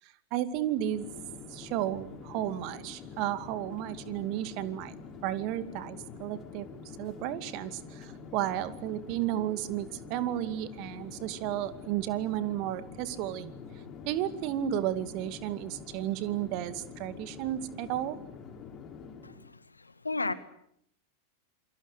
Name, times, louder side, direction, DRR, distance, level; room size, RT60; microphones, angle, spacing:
voice 1, 0.0-1.1 1.5-4.9 5.2-6.7 7.0-13.5 14.1-18.2, right 12 dB, 45° right, 12 dB, 2.4 m, -33 dB
Chatter / Fixed-wing aircraft airplane, 0.6-19.5, left 5 dB, 30° left, 6.2 m, -46 dB
voice 2, 19.2-20.3, left 3 dB, 80° left, 14 dB, 1.8 m, -34 dB
28.0 x 24.5 x 8.2 m, 0.71 s
figure-of-eight pair, 90°, 0 cm